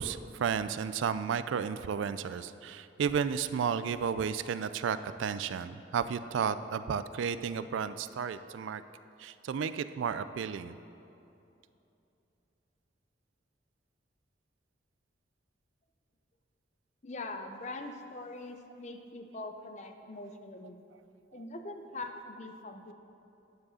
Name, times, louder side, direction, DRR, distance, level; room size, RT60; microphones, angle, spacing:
voice 1, 0.0-8.8 9.2-10.8, right 7 dB, 75° right, 13 dB, 0.3 m, -33 dB
voice 2, 17.0-20.8 21.3-22.9, left 2 dB, 35° left, 6 dB, 0.5 m, -42 dB
10.0 x 4.8 x 6.3 m, 2.8 s
head